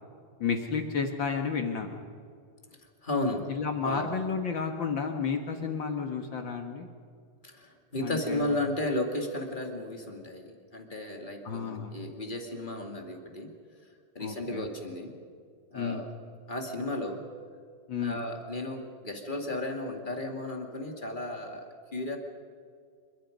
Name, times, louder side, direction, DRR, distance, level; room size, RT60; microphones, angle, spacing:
voice 1, 0.4-2.0 3.5-6.9 8.0-8.5 11.4-12.0 14.2-14.7 15.7-16.0 17.9-18.2, left 5 dB, 80° left, 5 dB, 1.0 m, -32 dB
voice 2, 3.0-3.5 3.8-4.1 7.4-13.5 14.1-15.1 15.7-16.1 16.5-17.2 18.0-22.2, left 1 dB, 20° left, 3 dB, 1.5 m, -34 dB
27.5 x 24.0 x 5.3 m, 2.2 s
omnidirectional pair, 4.3 m